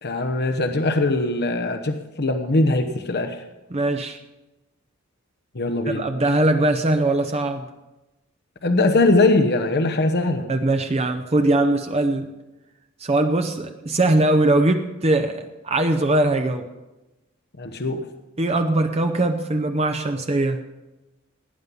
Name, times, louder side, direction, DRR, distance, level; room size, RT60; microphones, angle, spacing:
voice 1, 0.0-3.4 5.5-6.0 8.6-10.5 17.6-18.0, left 2 dB, 50° left, 6 dB, 1.0 m, -21 dB
voice 2, 3.7-4.2 5.9-7.6 10.5-12.3 13.0-16.6 18.4-20.6, right 2 dB, 30° right, 6 dB, 0.7 m, -21 dB
17.5 x 9.5 x 5.5 m, 1.0 s
head